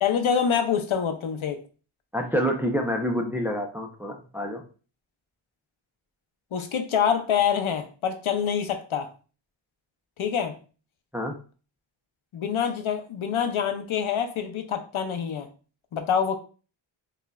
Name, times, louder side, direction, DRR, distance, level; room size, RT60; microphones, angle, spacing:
voice 1, 0.0-1.6 6.5-9.1 10.2-10.5 12.3-15.5 15.9-16.4, left 7 dB, 80° left, 7 dB, 0.7 m, -26 dB
voice 2, 2.1-4.6 11.1-11.3, equal, 5° right, 2 dB, 0.5 m, -27 dB
5.0 x 2.4 x 2.3 m, 0.37 s
wide cardioid pair, 135°, 49 cm